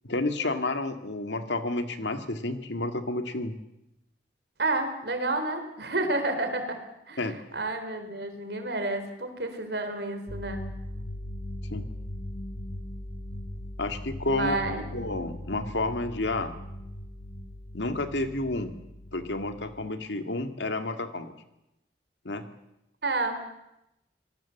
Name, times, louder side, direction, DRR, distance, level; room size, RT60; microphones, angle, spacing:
voice 1, 0.0-3.6 7.2-7.4 11.7-11.9 13.8-14.6 14.9-16.5 17.7-18.8 19.1-21.3 22.2-22.5, left 2 dB, 85° left, 8 dB, 2.1 m, -30 dB
voice 2, 4.6-6.8 7.1-10.6 14.3-14.9 23.0-23.4, right 2 dB, 70° right, 7 dB, 4.1 m, -30 dB
sound 1, 10.3-19.9, left 1 dB, 70° left, 2.9 m, -39 dB
26.5 x 19.0 x 7.2 m, 0.88 s
head